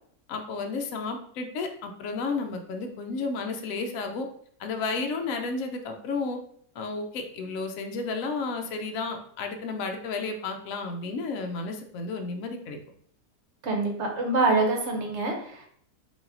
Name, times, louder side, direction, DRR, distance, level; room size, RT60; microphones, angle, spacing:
voice 1, 0.3-4.3 4.6-6.4 6.7-12.8, left 4 dB, 70° left, 4 dB, 1.0 m, -32 dB
voice 2, 13.6-15.7, right 3 dB, 55° right, 1 dB, 1.0 m, -25 dB
5.0 x 2.8 x 2.6 m, 0.62 s
omnidirectional pair, 1.6 m